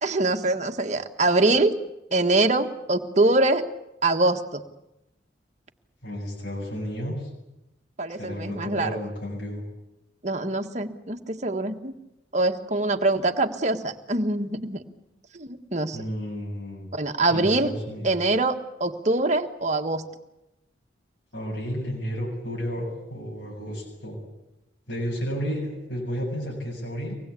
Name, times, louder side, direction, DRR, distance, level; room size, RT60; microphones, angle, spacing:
voice 1, 0.0-1.8 2.1-3.6 4.0-4.6 8.0-8.9 10.2-11.9 12.3-14.8 15.3-16.0 16.9-17.7 18.0-20.0, right 2 dB, 40° right, 5 dB, 1.6 m, -24 dB
voice 2, 6.0-7.3 8.1-9.6 15.9-16.9 17.3-18.2 21.3-24.2 24.9-27.1, equal, 85° left, -3 dB, 7.6 m, -32 dB
25.0 x 19.5 x 8.5 m, 0.90 s
head